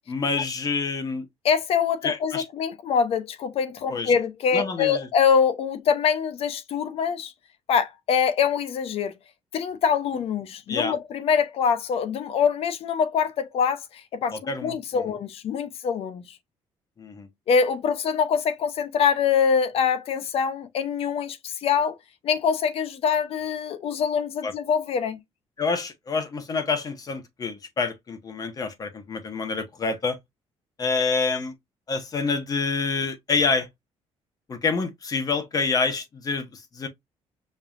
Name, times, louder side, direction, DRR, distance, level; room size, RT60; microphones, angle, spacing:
voice 1, 0.1-1.3 2.0-2.4 3.9-4.1 4.5-5.1 10.7-10.9 14.3-15.0 17.0-17.3 24.4-24.5 25.6-30.2 30.8-31.5 31.9-33.7 34.5-36.9, left 4 dB, 35° left, 1.0 m, -27 dB
voice 2, 1.4-7.3 7.7-9.1 9.5-16.4 17.5-22.0 22.2-25.2, left 6 dB, 60° left, 0.7 m, -24 dB
5.3 x 2.8 x 2.5 m
cardioid pair, 140°, 11 cm